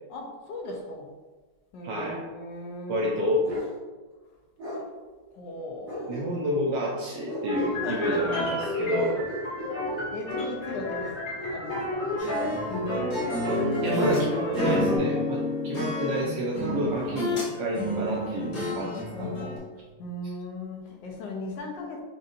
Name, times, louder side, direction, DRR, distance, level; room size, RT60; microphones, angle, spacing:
voice 1, 0.1-1.1 1.7-3.2 5.3-6.4 7.7-8.7 10.1-12.3 14.8-15.6 18.7-19.6 20.0-22.0, left 2 dB, 75° left, 0 dB, 1.3 m, -38 dB
voice 2, 1.8-2.2 2.9-3.5 6.1-9.2 13.8-19.3, equal, 75° right, -4 dB, 1.2 m, -29 dB
Bark, 3.4-3.7 4.6-4.8 5.9-6.6 7.2-7.8 9.0-10.1 11.4-12.3 13.1-14.0, equal, 55° right, 1.8 m, -37 dB
sound 1, 7.5-15.0, equal, 40° left, 1.8 m, -30 dB
sound 2, 12.2-14.3 14.5-17.5 17.7-19.6, left 2 dB, 60° left, 1.6 m, -30 dB
5.3 x 2.6 x 2.5 m, 1.3 s
omnidirectional pair, 2.0 m